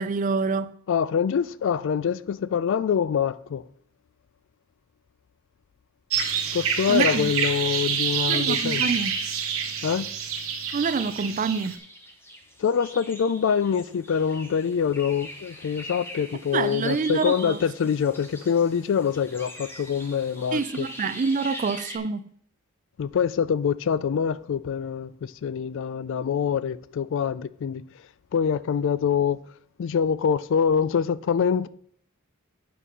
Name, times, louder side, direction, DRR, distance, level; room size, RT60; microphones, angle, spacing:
voice 1, 0.0-0.7 6.9-7.3 8.3-9.1 10.7-11.8 16.5-17.6 20.5-22.2, right 4 dB, 35° right, 0.4 m, -26 dB
voice 2, 0.9-3.7 6.5-8.9 9.8-10.1 12.6-20.9 23.0-27.8 28.3-29.4 29.8-31.7, left 7 dB, 60° left, 0.3 m, -25 dB
sound 1, 6.1-11.7, right 7 dB, 70° right, 1.2 m, -27 dB
sound 2, 11.1-22.0, equal, 10° left, 1.2 m, -42 dB
8.6 x 5.3 x 5.5 m
head